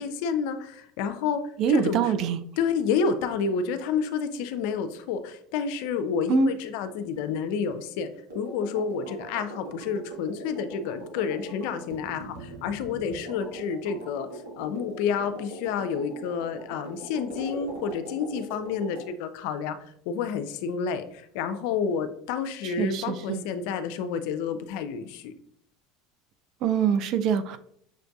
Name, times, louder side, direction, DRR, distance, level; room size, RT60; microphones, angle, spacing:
voice 1, 0.0-2.1 2.6-8.1 8.3-25.3, left 6 dB, 65° left, 9 dB, 0.4 m, -30 dB
voice 2, 1.6-2.4 6.3-6.5 22.6-23.4 26.6-27.6, right 7 dB, 55° right, 12 dB, 0.4 m, -24 dB
sound 1, 8.3-19.1, right 1 dB, 80° right, 1.2 m, -41 dB
6.5 x 2.5 x 2.3 m, 0.67 s
hypercardioid pair, 80°, 0 cm